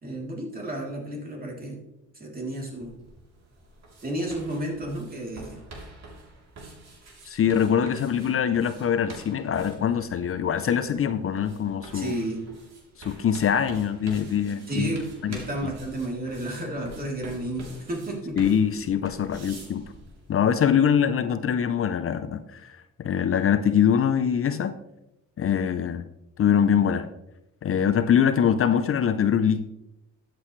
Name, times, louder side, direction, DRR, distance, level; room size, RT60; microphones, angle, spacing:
voice 1, 0.0-1.8 2.1-2.9 4.0-5.6 11.9-12.4 14.7-18.4 19.3-19.4, right 1 dB, 30° right, -1 dB, 3.4 m, -32 dB
sound 1, 2.8-20.4, right 2 dB, 60° right, 3.4 m, -46 dB
voice 2, 7.2-12.2 13.0-14.9 15.2-15.4 18.4-19.8 20.3-22.7 23.0-24.7 25.4-26.0 26.4-27.1 27.6-29.7, left 8 dB, 45° left, 11 dB, 0.7 m, -23 dB
13.0 x 7.8 x 3.2 m, 0.87 s
cardioid pair, 90°, 30 cm